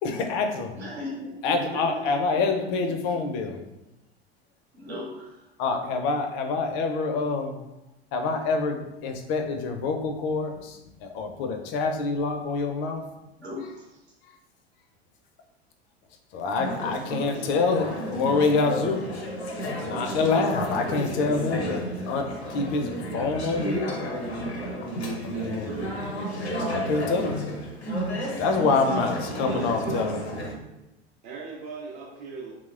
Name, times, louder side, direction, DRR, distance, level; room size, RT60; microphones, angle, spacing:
voice 1, 0.0-0.8 1.4-3.6 5.6-7.6 8.1-13.1 16.3-19.0 19.6-24.0 24.8-24.9 25.2-25.7 26.6-27.4 28.4-30.3, left 4 dB, 40° left, 5 dB, 0.4 m, -26 dB
voice 2, 0.8-2.4 2.8-2.9 4.7-5.5 13.4-14.0, left 1 dB, 80° right, -3 dB, 0.9 m, -37 dB
Conversation / Chatter, 16.5-30.5, equal, 90° left, 0.6 m, -32 dB
voice 3, 25.3-26.0 28.6-30.2 31.2-32.5, right 4 dB, 50° right, -3 dB, 0.6 m, -38 dB
2.8 x 2.1 x 2.3 m, 0.94 s
figure-of-eight pair, 80°, 32 cm